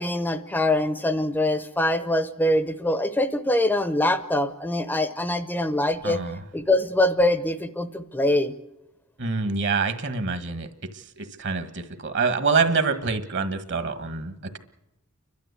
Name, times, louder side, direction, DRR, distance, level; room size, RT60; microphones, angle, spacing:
voice 1, 0.0-6.2 6.5-8.5, left 1 dB, 10° left, 11 dB, 0.7 m, -23 dB
voice 2, 6.0-6.4 9.2-10.7 10.9-14.6, right 4 dB, 55° right, 10 dB, 1.6 m, -26 dB
30.0 x 12.5 x 8.2 m, 0.94 s
head